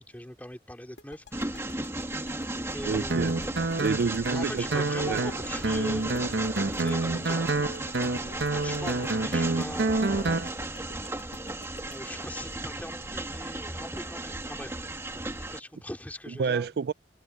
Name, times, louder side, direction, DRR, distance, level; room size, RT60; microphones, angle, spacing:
voice 1, 0.0-1.7 2.1-2.2 2.7-3.3 4.3-7.5 8.6-10.5 11.9-15.2 15.5-16.8, left 1 dB, 10° left, 3.1 m, -41 dB
sound 1, 1.0-13.7, left 2 dB, 80° left, 2.1 m, -50 dB
Train, 1.3-15.6, right 2 dB, 15° right, 2.1 m, -35 dB
voice 2, 2.8-3.3 3.8-5.2 16.4-16.9, right 5 dB, 65° right, 0.4 m, -29 dB
Guitar, 3.1-10.5, right 2 dB, 90° right, 1.0 m, -28 dB
head